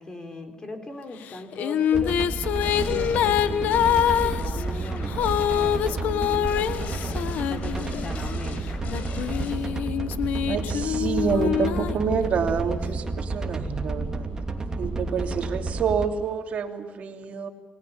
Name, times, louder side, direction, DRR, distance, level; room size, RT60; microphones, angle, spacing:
voice 1, 0.0-8.6, left 2 dB, 30° left, 6 dB, 4.6 m, -39 dB
Female singing, 1.3-8.2 8.9-12.6, left 10 dB, 80° left, 1.2 m, -25 dB
sound 1, 1.9-16.0, right 3 dB, 25° right, 2.9 m, -31 dB
sound 2, 2.6-9.6, left 4 dB, 65° left, 5.7 m, -40 dB
voice 2, 10.5-14.3 14.8-17.5, right 6 dB, 60° right, 4 dB, 2.9 m, -28 dB
29.5 x 20.0 x 7.2 m, 1.2 s
cardioid pair, 115°, 3 cm